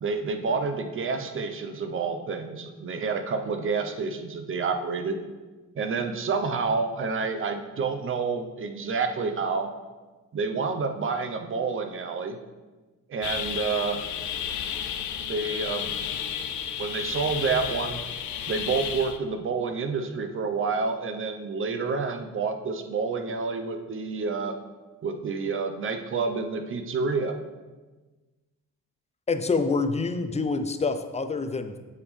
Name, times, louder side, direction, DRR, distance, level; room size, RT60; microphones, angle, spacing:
voice 1, 0.0-5.2 5.8-9.7 10.3-12.4 13.1-14.0 15.2-15.9 16.8-18.0 18.5-24.5 25.0-27.3, right 4 dB, 45° right, 6 dB, 0.8 m, -29 dB
sound 1, 13.2-19.2, left 9 dB, 75° left, 0.6 m, -32 dB
voice 2, 29.3-31.8, left 4 dB, 20° left, 8 dB, 0.5 m, -26 dB
8.3 x 5.3 x 3.3 m, 1.3 s
cardioid pair, 90°, 30 cm